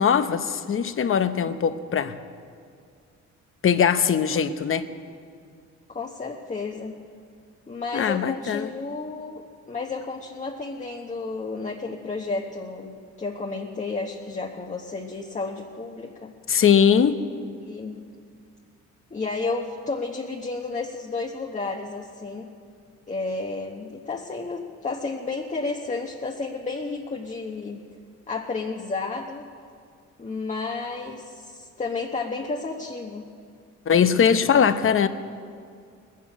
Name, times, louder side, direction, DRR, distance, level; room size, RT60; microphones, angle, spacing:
voice 1, 0.0-2.2 3.6-4.9 7.9-8.7 16.5-17.2 33.9-35.1, left 7 dB, 45° left, 11 dB, 0.8 m, -21 dB
voice 2, 5.9-6.9 7.7-16.3 17.6-18.0 19.1-22.5 23.1-27.8 28.3-29.4 30.2-33.2 34.2-34.4, left 3 dB, 25° left, 0 dB, 1.2 m, -32 dB
20.0 x 7.5 x 8.6 m, 2.2 s
cardioid pair, 90°, 30 cm